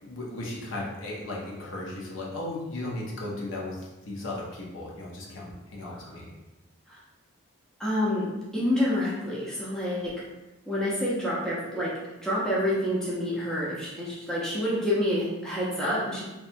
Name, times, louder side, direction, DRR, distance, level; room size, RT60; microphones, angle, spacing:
voice 1, 0.0-6.3, left 2 dB, 65° left, -3 dB, 0.6 m, -36 dB
voice 2, 7.8-10.1 10.7-11.9 12.2-16.2, left 1 dB, 5° left, -8 dB, 0.5 m, -28 dB
2.8 x 2.2 x 2.5 m, 1.0 s
head